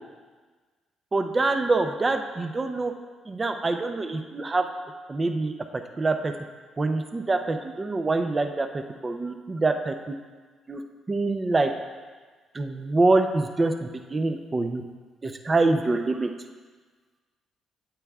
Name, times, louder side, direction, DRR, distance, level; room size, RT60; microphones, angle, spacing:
voice 1, 1.1-2.9 3.3-4.7 5.1-5.5 6.0-6.3 6.8-9.9 10.7-10.8 11.1-11.7 12.5-14.8 15.2-16.3, right 3 dB, 25° right, 6 dB, 0.5 m, -25 dB
8.8 x 8.4 x 2.4 m, 1.4 s
cardioid pair, 90°, 0 cm